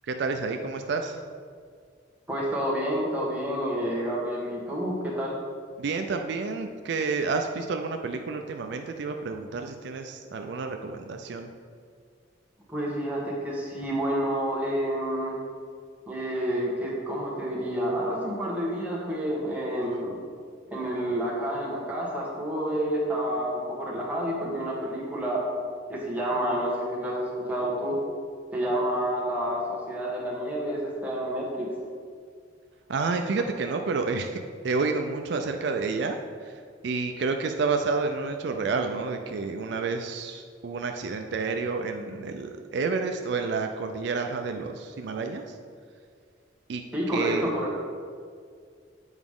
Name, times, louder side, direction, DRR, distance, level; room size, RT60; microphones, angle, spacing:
voice 1, 0.1-1.2 5.8-11.5 32.9-36.5 36.8-45.6 46.7-46.8 47.1-47.5, right 4 dB, 65° right, 5 dB, 0.4 m, -30 dB
voice 2, 2.3-5.4 12.7-15.4 16.1-20.1 20.7-25.4 25.9-28.0 28.5-31.7 46.9-47.7, equal, 10° right, -5 dB, 1.4 m, -29 dB
8.0 x 4.9 x 3.6 m, 2.1 s
head